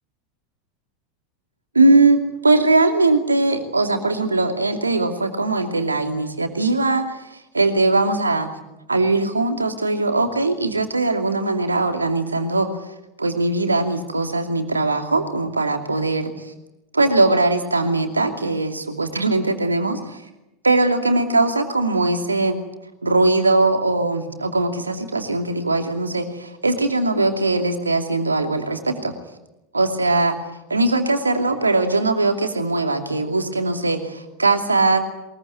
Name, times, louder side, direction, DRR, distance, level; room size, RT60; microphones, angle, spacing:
voice 1, 1.7-8.5 8.9-12.9 13.2-16.5 16.9-20.2 20.6-22.6 23.0-29.1 29.7-30.4 30.7-35.0, right 2 dB, 85° right, 6 dB, 2.7 m, -20 dB
22.5 x 21.5 x 9.3 m, 0.93 s
figure-of-eight pair, 85°, 0 cm